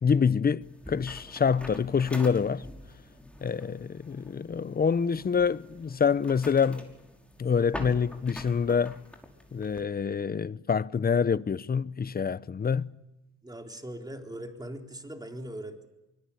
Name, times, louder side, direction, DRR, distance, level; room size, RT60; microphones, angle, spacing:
voice 1, 0.0-2.6 3.4-6.9 7.4-9.0 9.5-12.9, left 6 dB, 30° left, 0.8 m, -26 dB
sound 1, 0.6-9.8, left 1 dB, 5° left, 5.7 m, -45 dB
voice 2, 13.4-15.9, right 1 dB, 15° right, 3.8 m, -40 dB
24.5 x 22.5 x 8.6 m
cardioid pair, 90°, 30 cm